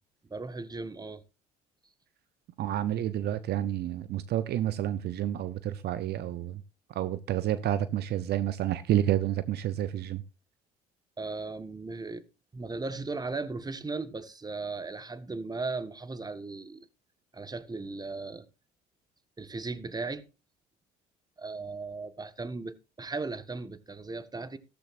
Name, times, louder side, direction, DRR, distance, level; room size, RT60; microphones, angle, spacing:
voice 1, 0.3-1.2 11.2-12.2 12.5-16.9 17.3-18.5 19.4-20.3 21.4-24.6, right 3 dB, 20° right, 1.5 m, -37 dB
voice 2, 2.6-6.6 6.9-10.2, right 12 dB, 60° right, 0.8 m, -29 dB
14.0 x 13.5 x 2.6 m
hypercardioid pair, 60°, 19 cm